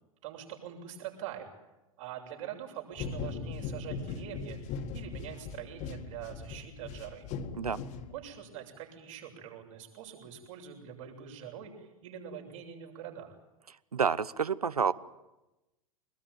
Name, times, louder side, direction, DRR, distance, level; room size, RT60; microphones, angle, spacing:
voice 1, 0.2-1.5 2.0-7.3 8.1-13.4, right 9 dB, 60° right, 1 dB, 7.2 m, -44 dB
sound 1, 2.9-8.5, left 5 dB, 40° left, 2.0 m, -39 dB
voice 2, 13.9-14.9, right 6 dB, 85° right, 18 dB, 0.9 m, -29 dB
24.0 x 20.5 x 9.2 m, 1.0 s
figure-of-eight pair, 95°, 19 cm